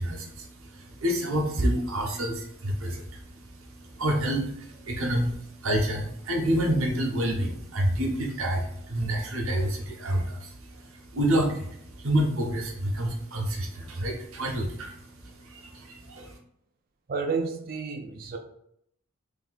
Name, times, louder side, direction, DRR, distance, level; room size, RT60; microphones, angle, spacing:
voice 1, 0.0-16.4, right 1 dB, 80° right, 0 dB, 0.9 m, -28 dB
voice 2, 17.1-18.4, right 4 dB, 45° right, 4 dB, 0.4 m, -30 dB
3.4 x 2.7 x 4.0 m, 0.72 s
head